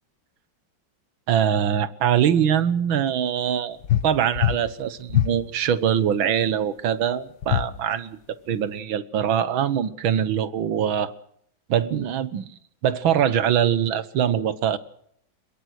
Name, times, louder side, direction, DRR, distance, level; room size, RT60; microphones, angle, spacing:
voice 1, 1.3-3.8 4.0-8.2 8.5-11.1 11.7-12.5 12.8-14.8, right 9 dB, 85° right, 2.0 m, -23 dB
sound 1, 3.8-4.1 4.3-4.6 5.1-5.3 7.4-7.7, left 12 dB, 65° left, 1.6 m, -21 dB
22.0 x 22.0 x 6.4 m
omnidirectional pair, 2.1 m